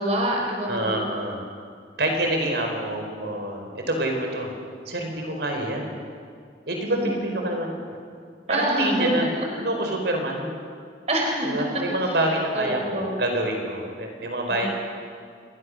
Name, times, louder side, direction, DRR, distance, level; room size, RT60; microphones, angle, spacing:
voice 1, 0.0-1.0 6.9-7.0 8.5-9.1 11.1-11.5 12.5-13.2 14.5-14.7, right 1 dB, 40° right, 0 dB, 4.1 m, -26 dB
voice 2, 0.7-1.4 2.0-4.5 4.9-5.9 6.7-7.8 8.5-9.3 9.6-10.6 11.4-14.7, right 1 dB, 70° right, 2 dB, 4.5 m, -26 dB
28.5 x 23.0 x 6.5 m, 2.2 s
head